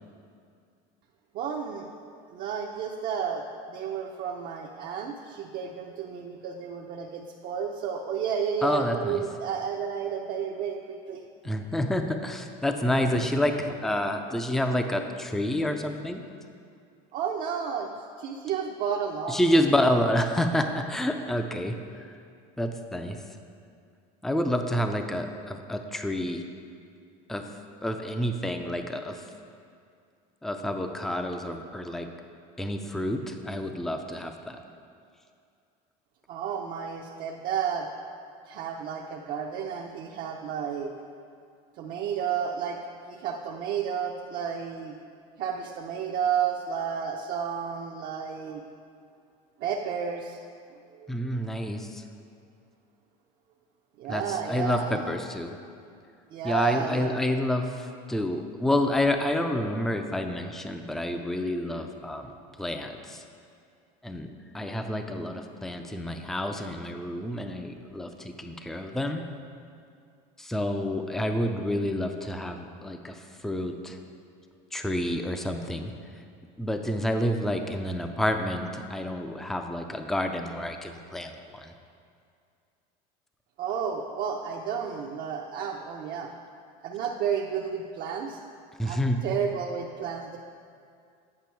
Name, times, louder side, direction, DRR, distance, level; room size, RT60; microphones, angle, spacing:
voice 1, 1.3-11.2 12.9-13.3 13.6-13.7 17.1-17.9 18.2-19.4 36.3-37.9 38.5-40.9 41.8-42.8 43.1-44.9 45.4-48.6 49.6-50.4 50.9-51.1 54.0-55.1 56.3-57.1 83.6-86.3 86.8-88.4 88.8-90.4, right 7 dB, 50° right, 0 dB, 0.6 m, -32 dB
voice 2, 8.6-9.2 11.4-13.5 13.8-16.2 19.3-21.8 22.6-23.2 24.2-26.4 27.3-27.4 27.8-29.2 30.4-32.1 32.6-34.6 51.1-52.0 54.1-55.6 56.4-62.3 62.6-63.2 64.0-64.3 64.5-69.2 70.4-74.0 74.7-75.9 76.6-81.7 88.8-89.2, left 1 dB, ahead, 6 dB, 0.4 m, -28 dB
8.6 x 5.2 x 4.5 m, 2.4 s
supercardioid pair, 125°, 20 cm